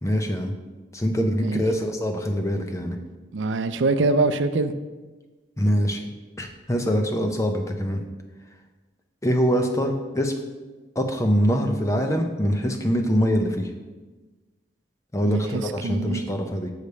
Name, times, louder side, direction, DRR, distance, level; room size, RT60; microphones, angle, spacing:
voice 1, 0.0-0.5 0.9-3.0 5.6-8.0 9.2-10.3 11.0-13.7 15.1-16.7, equal, 15° left, 4 dB, 0.6 m, -24 dB
voice 2, 3.3-4.7 15.2-16.2, right 3 dB, 80° right, 10 dB, 0.5 m, -24 dB
6.5 x 5.1 x 6.7 m, 1.3 s
head